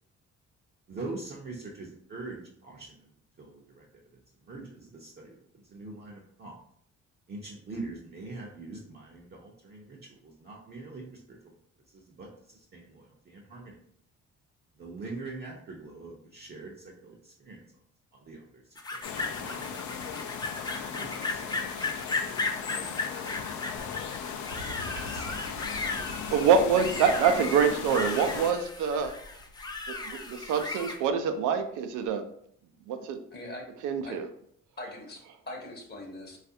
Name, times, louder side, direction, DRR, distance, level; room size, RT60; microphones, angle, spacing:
voice 1, 0.9-3.1 3.4-3.8 4.4-6.5 7.3-11.4 11.9-13.8 14.8-17.6 18.1-18.6 18.9-20.1 20.6-21.8 22.9-23.0 24.9-25.4 26.0-26.5, right 3 dB, 35° right, -2 dB, 0.5 m, -43 dB
sound 1, 18.8-31.0, left 3 dB, 15° left, 0.3 m, -36 dB
sound 2, 19.0-28.5, left 7 dB, 75° left, 0.5 m, -37 dB
sound 3, 23.8-30.9 32.1-32.2, right 2 dB, 60° right, 1.0 m, -48 dB
voice 2, 26.3-29.1 29.9-32.2 32.9-33.2 33.8-34.3, right 6 dB, 90° right, 7 dB, 0.5 m, -25 dB
voice 3, 33.3-33.6 34.0-34.2 34.8-36.4, left 1 dB, 35° left, 0 dB, 0.9 m, -41 dB
3.2 x 2.4 x 2.7 m, 0.66 s
cardioid pair, 90°, 30 cm